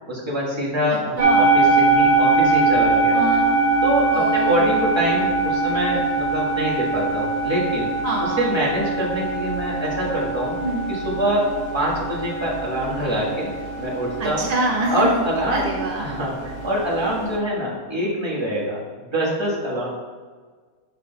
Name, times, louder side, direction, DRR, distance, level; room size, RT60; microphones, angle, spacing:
voice 1, 0.1-3.1 3.8-7.9 8.2-10.6 10.9-13.5 13.8-14.5 14.9-15.7 16.0-19.9, equal, 20° right, -6 dB, 1.5 m, -25 dB
voice 2, 0.9-1.5 3.1-3.5 4.1-4.7 8.0-8.5 10.6-11.0 14.2-15.2 15.5-16.1, right 2 dB, 55° right, -1 dB, 0.4 m, -26 dB
sound 1, 1.2-17.4, right 3 dB, 75° right, 1.4 m, -22 dB
5.8 x 5.0 x 3.9 m, 1.5 s
omnidirectional pair, 1.6 m